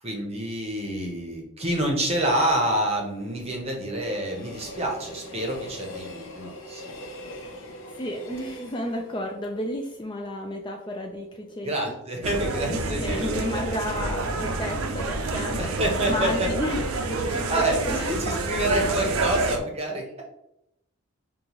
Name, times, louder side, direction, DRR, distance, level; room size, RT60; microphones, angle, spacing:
voice 1, 0.0-7.1 11.6-13.6 14.8-14.9 15.6-16.5 17.3-20.1, right 1 dB, 30° right, 1 dB, 0.8 m, -28 dB
Train, 2.7-11.1 11.5-11.6, left 1 dB, 65° left, 0.8 m, -43 dB
voice 2, 8.0-12.0 12.6-15.8 16.1-18.4, left 1 dB, 20° left, 1 dB, 0.3 m, -32 dB
sound 1, 12.2-19.6, right 3 dB, 80° right, 0.5 m, -28 dB
5.2 x 2.4 x 3.0 m, 0.82 s
head